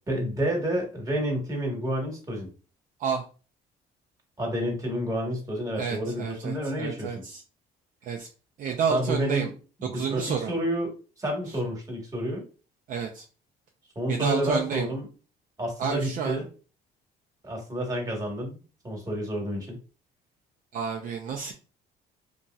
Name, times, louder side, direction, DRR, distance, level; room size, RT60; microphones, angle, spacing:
voice 1, 0.1-2.5 4.4-7.2 8.9-9.5 9.8-12.4 13.9-15.1 15.6-16.5 17.4-18.6 18.8-19.8, equal, 20° right, 0 dB, 1.2 m, -29 dB
voice 2, 5.8-7.4 8.0-8.3 8.6-9.5 9.9-10.5 12.9-13.2 14.1-14.9 15.8-16.4 20.7-21.5, right 6 dB, 55° right, 2 dB, 0.5 m, -30 dB
2.9 x 2.7 x 2.3 m, 0.35 s
cardioid pair, 110°, 17 cm